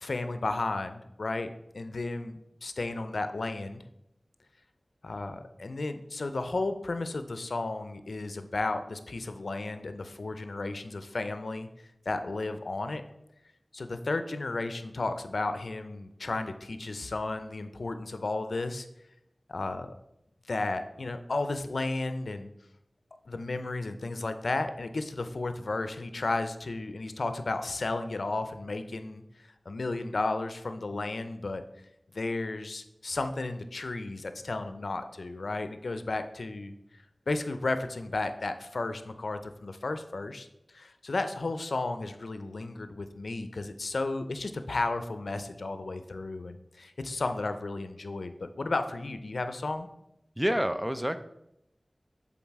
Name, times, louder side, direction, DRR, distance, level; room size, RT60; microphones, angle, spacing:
voice 1, 0.0-3.8 5.0-11.7 12.1-13.0 13.7-18.9 19.5-20.0 20.5-22.5 23.3-31.6 32.1-49.9, left 2 dB, 90° left, 9 dB, 0.5 m, -33 dB
voice 2, 50.4-51.2, equal, 10° right, 11 dB, 0.5 m, -27 dB
7.2 x 4.1 x 4.6 m, 0.83 s
wide cardioid pair, 50°, 0 cm